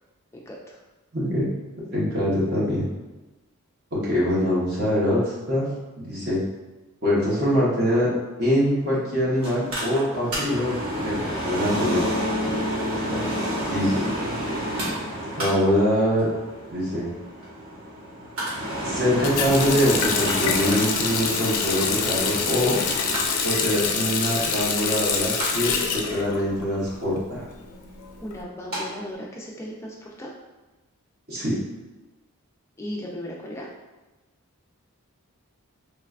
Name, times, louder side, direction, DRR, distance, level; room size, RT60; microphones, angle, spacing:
voice 1, 0.3-0.8 12.9-13.9 28.2-30.3 32.8-33.7, equal, 10° left, -3 dB, 0.3 m, -37 dB
voice 2, 1.1-1.5 1.9-2.9 3.9-5.7 6.0-6.4 7.0-8.1 8.4-10.7 11.0-12.1 13.7-14.0 15.4-16.3 16.7-17.1 18.8-22.8 23.4-27.4 31.3-31.6, equal, 45° right, -7 dB, 0.7 m, -23 dB
Mechanical fan, 9.4-28.8 29.1-29.2, right 1 dB, 65° right, 1.1 m, -31 dB
Bass guitar, 11.7-16.0, left 2 dB, 85° right, 1.2 m, -33 dB
Water tap faucet, 19.2-27.0 27.3-28.3, left 5 dB, 90° left, 0.4 m, -26 dB
3.2 x 2.2 x 2.3 m, 1.1 s
head